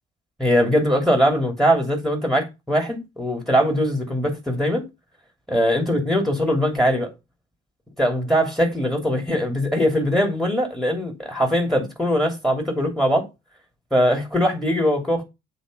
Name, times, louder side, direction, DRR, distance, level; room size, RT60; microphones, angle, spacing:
voice 1, 0.4-4.8 5.5-7.1 8.0-13.3 13.9-15.2, equal, ahead, 2.8 m, -21 dB
8.1 x 3.5 x 4.9 m
hypercardioid pair, 45°, 37 cm